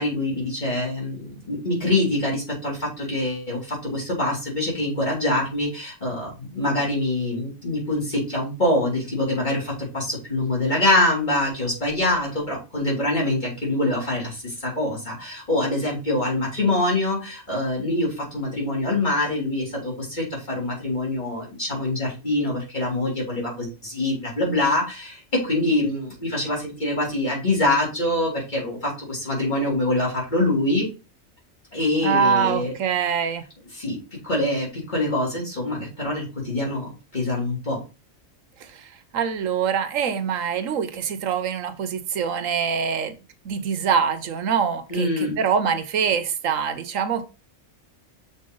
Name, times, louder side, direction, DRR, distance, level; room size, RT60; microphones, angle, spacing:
voice 1, 0.0-30.9 31.7-32.7 33.7-34.0 34.2-37.8 44.9-45.3, left 1 dB, 35° left, 3.4 m, -25 dB
voice 2, 32.0-33.4 38.6-43.1 43.4-45.1 45.4-47.2, right 7 dB, 80° right, 1.1 m, -24 dB
6.4 x 4.5 x 3.9 m
omnidirectional pair, 1.4 m